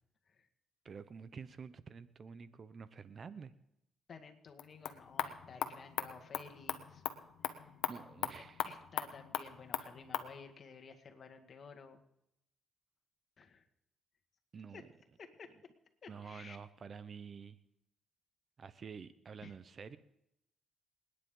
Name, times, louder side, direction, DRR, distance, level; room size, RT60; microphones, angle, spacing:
voice 1, 0.8-3.5 7.9-8.6 14.5-14.9 16.1-17.6 18.6-20.0, right 6 dB, 45° right, 14 dB, 0.8 m, -49 dB
voice 2, 4.1-7.0 7.5-7.7 8.6-12.0 13.4-13.7 14.7-14.8 15.2-15.5 16.0-16.6 19.4-19.5, left 5 dB, 50° left, 6 dB, 2.0 m, -53 dB
sound 1, 4.5-10.3, left 10 dB, 85° left, 1.1 m, -40 dB
28.5 x 9.8 x 3.9 m, 0.79 s
cardioid pair, 90°, 0 cm